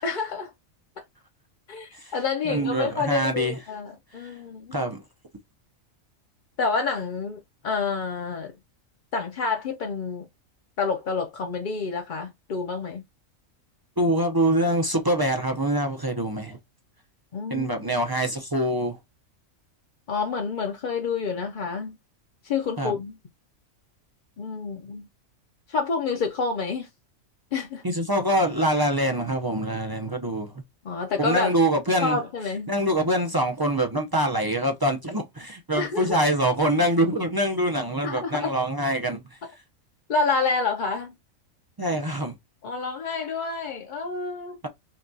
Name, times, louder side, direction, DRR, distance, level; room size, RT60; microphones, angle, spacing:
voice 1, 0.0-0.5 1.7-4.8 6.6-8.5 9.1-10.3 10.8-13.0 17.3-17.7 20.1-22.0 22.4-23.1 24.4-25.1 25.7-26.9 27.5-27.8 30.8-31.5 32.0-32.7 35.8-36.2 38.0-38.5 40.1-41.1 42.6-44.6, left 4 dB, 50° left, 0.6 m, -28 dB
voice 2, 2.4-3.6 4.1-4.3 4.7-5.0 14.0-16.6 17.5-19.0 22.8-23.0 27.8-30.5 31.2-32.2 32.7-39.2 41.8-42.3, right 1 dB, 35° right, 0.3 m, -24 dB
5.7 x 2.3 x 2.6 m
omnidirectional pair, 1.4 m